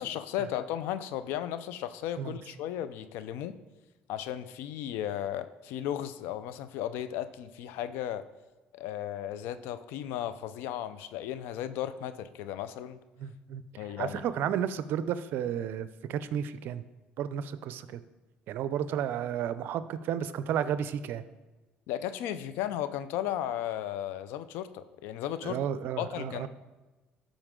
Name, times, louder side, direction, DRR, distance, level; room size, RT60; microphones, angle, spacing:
voice 1, 0.0-3.6 4.1-8.2 8.7-13.0 13.8-14.2 21.9-25.6 26.0-26.5, left 11 dB, 80° left, 12 dB, 0.5 m, -35 dB
voice 2, 13.2-13.6 14.0-16.8 17.2-18.0 18.5-21.2 25.4-26.5, right 9 dB, 70° right, 14 dB, 0.5 m, -32 dB
13.0 x 5.1 x 3.7 m, 1.1 s
supercardioid pair, 90°, 4 cm